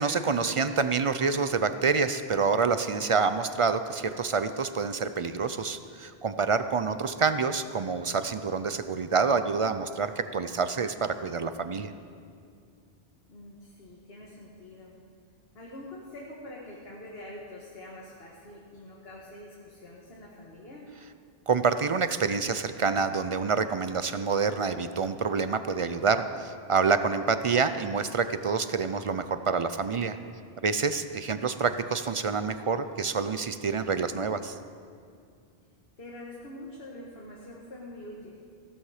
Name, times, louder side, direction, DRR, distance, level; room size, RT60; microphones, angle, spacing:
voice 1, 0.0-11.9 21.5-30.2 30.6-34.6, right 5 dB, 50° right, 11 dB, 0.4 m, -27 dB
voice 2, 13.3-15.0 15.5-20.9 36.0-38.4, left 1 dB, 70° left, -3 dB, 1.8 m, -45 dB
15.5 x 13.0 x 4.9 m, 2.3 s
omnidirectional pair, 1.1 m